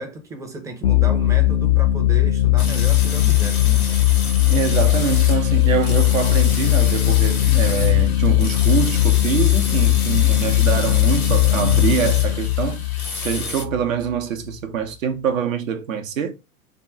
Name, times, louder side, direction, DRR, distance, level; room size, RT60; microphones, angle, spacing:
voice 1, 0.0-3.9, right 2 dB, 10° right, 0.5 m, -33 dB
sound 1, 0.8-14.1, left 16 dB, 60° left, 0.6 m, -18 dB
sound 2, 2.6-13.7, left 4 dB, 80° left, 1.0 m, -31 dB
voice 2, 4.5-12.9 13.2-16.3, right 7 dB, 65° right, 0.7 m, -24 dB
3.6 x 2.2 x 3.5 m
figure-of-eight pair, 95°, 43 cm